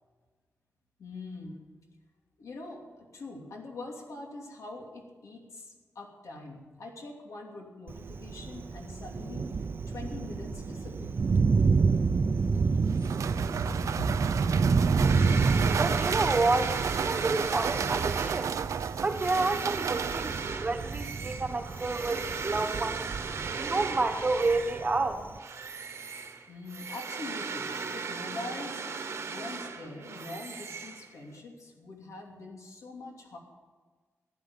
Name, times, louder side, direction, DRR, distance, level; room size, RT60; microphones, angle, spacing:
voice 1, 1.0-1.6 2.4-9.5 9.9-11.2 13.6-13.7 14.0-14.1 26.5-28.8 29.3-33.4, left 1 dB, 85° left, 1 dB, 2.8 m, -43 dB
Thunder, 7.9-25.4, right 4 dB, 45° right, 0.6 m, -29 dB
sound 1, 12.4-21.1, right 7 dB, 90° right, 0.5 m, -35 dB
sound 2, 15.0-25.0 25.4-31.4, right 5 dB, 60° right, 1.2 m, -37 dB
voice 2, 15.8-18.5 19.0-23.0 23.6-25.2, right 3 dB, 25° right, 6 dB, 1.2 m, -29 dB
15.0 x 10.5 x 7.3 m, 1.4 s
wide cardioid pair, 165°, 5 cm